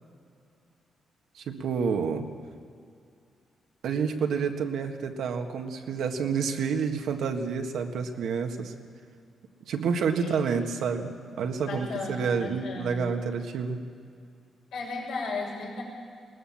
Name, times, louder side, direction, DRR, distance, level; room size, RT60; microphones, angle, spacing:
voice 1, 1.4-2.3 3.8-8.7 9.7-13.8, right 6 dB, 80° right, 4 dB, 1.7 m, -29 dB
voice 2, 11.7-13.0 14.7-15.8, left 4 dB, 90° left, -2 dB, 6.6 m, -35 dB
21.0 x 19.0 x 7.3 m, 2.3 s
cardioid pair, 110°, 0 cm